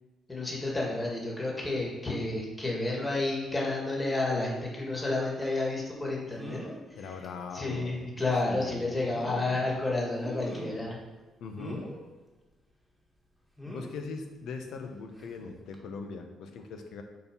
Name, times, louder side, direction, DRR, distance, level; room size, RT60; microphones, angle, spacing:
voice 1, 0.3-6.6 7.5-11.0, left 2 dB, 20° left, -3 dB, 2.3 m, -30 dB
sound 1, 5.4-5.6 6.4-6.8 7.2-7.3 7.7-7.9 8.8-9.8 10.2-10.9 11.6-12.0 13.6-14.0 15.2-15.3 15.7-15.8, equal, 5° left, 1.5 m, -42 dB
voice 2, 7.0-7.9 8.4-9.0 11.4-11.9 13.7-17.0, left 4 dB, 75° left, 5 dB, 0.9 m, -40 dB
6.8 x 4.2 x 5.4 m, 1.3 s
cardioid pair, 90°, 0 cm